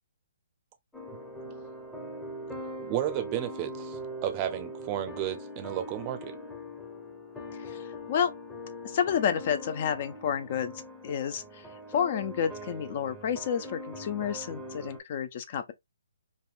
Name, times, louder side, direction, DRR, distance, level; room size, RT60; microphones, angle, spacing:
sound 1, 0.9-15.0, equal, 5° left, 0.7 m, -41 dB
voice 1, 2.9-6.4, right 12 dB, 30° right, 0.6 m, -33 dB
voice 2, 7.6-8.3 8.8-10.7 11.0-11.7 11.9-15.7, left 8 dB, 45° left, 0.5 m, -30 dB
3.4 x 2.2 x 2.4 m
hypercardioid pair, 140°, 0 cm